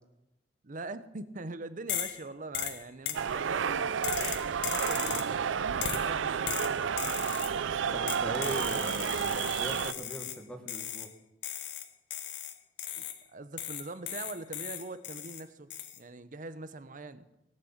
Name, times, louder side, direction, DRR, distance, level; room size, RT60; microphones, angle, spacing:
voice 1, 0.6-4.0 4.7-6.8 12.9-15.7 16.0-17.3, right 3 dB, 45° right, 12 dB, 0.8 m, -43 dB
sound 1, 1.9-2.2 2.5-3.3 4.0-5.4 5.8-6.1 6.5-7.6 8.1-10.4 10.7-11.1 11.4-13.2 13.6-15.4 15.7-16.0, left 10 dB, 70° left, 1.0 m, -37 dB
sound 2, 3.1-9.9, right 7 dB, 90° right, 0.5 m, -31 dB
voice 2, 7.9-11.1, right 1 dB, 5° left, 3 dB, 1.6 m, -40 dB
18.0 x 6.7 x 7.2 m, 0.89 s
head